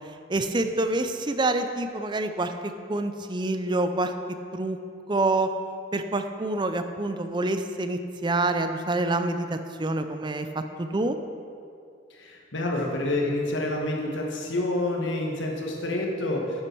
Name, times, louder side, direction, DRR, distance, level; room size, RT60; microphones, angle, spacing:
voice 1, 0.3-4.1 4.5-4.8 5.1-5.5 5.9-11.2, right 2 dB, 25° right, 8 dB, 0.5 m, -27 dB
voice 2, 12.1-16.6, left 2 dB, 75° left, 0 dB, 1.6 m, -28 dB
11.5 x 7.8 x 4.6 m, 2.4 s
head